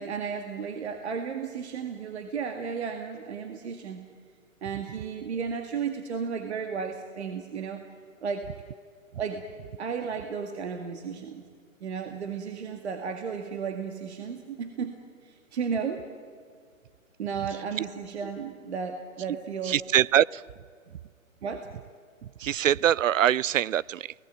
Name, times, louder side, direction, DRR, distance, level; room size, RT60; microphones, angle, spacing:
voice 1, 0.0-4.0 4.6-7.9 8.2-8.5 9.2-9.4 9.8-11.5 11.8-14.9 15.2-16.1 17.2-19.8 21.4-21.7, right 6 dB, 50° right, 2.1 m, -34 dB
voice 2, 19.6-20.4 22.4-24.1, right 10 dB, 65° right, 0.6 m, -23 dB
27.5 x 18.5 x 9.3 m
hypercardioid pair, 165°, 41 cm